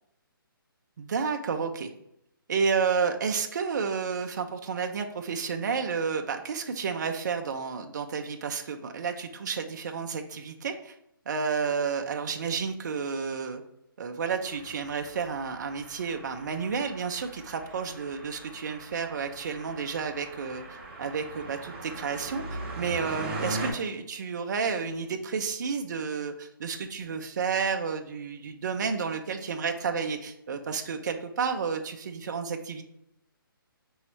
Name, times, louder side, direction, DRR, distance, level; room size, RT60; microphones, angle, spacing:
voice 1, 1.0-1.9 2.5-10.9 11.3-13.6 14.0-20.6 21.0-32.8, right 5 dB, 50° right, 5 dB, 0.4 m, -31 dB
sound 1, 14.4-23.7, right 2 dB, 30° right, 0.9 m, -40 dB
5.5 x 3.0 x 3.1 m, 0.80 s
hypercardioid pair, 165°, 12 cm